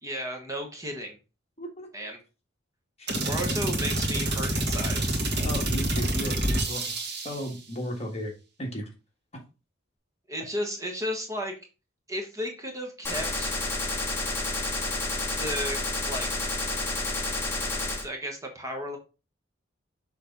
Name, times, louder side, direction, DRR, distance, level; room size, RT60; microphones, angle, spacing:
voice 1, 0.0-1.2 1.9-2.2 3.2-5.1 10.3-11.5 12.1-13.5 15.4-15.8 16.1-16.3 18.0-19.0, equal, 15° right, 2 dB, 1.3 m, -34 dB
voice 2, 1.6-1.9 3.0-3.1 5.4-8.3 8.6-8.8, equal, 35° left, 1 dB, 1.7 m, -35 dB
sound 1, 3.1-7.5, right 1 dB, 60° right, 1.7 m, -27 dB
Gunshot gunfire, 13.0-18.0, left 2 dB, 10° left, 1.8 m, -30 dB
6.6 x 3.3 x 5.3 m, 0.31 s
head